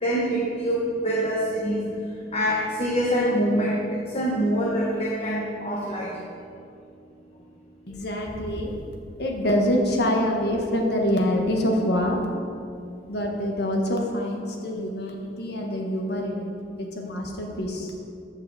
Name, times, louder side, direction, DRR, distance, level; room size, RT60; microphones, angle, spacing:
voice 1, 0.0-1.9 2.3-6.2, equal, 35° left, -3 dB, 1.0 m, -25 dB
voice 2, 7.9-8.7 9.2-12.2 13.1-16.5 16.8-17.9, left 1 dB, 65° left, 1 dB, 1.3 m, -25 dB
14.0 x 5.7 x 4.1 m, 2.4 s
head